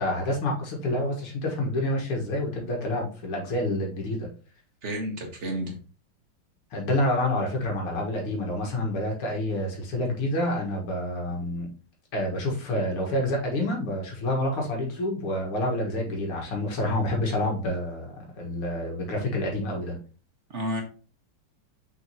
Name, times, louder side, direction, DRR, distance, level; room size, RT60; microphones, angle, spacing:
voice 1, 0.0-4.3 6.7-11.7 12.1-20.0, left 1 dB, 90° left, 0 dB, 2.6 m, -28 dB
voice 2, 4.8-5.8 11.3-11.4 20.5-20.8, equal, 35° right, 1 dB, 1.7 m, -31 dB
6.1 x 5.1 x 3.0 m, 0.38 s
omnidirectional pair, 2.4 m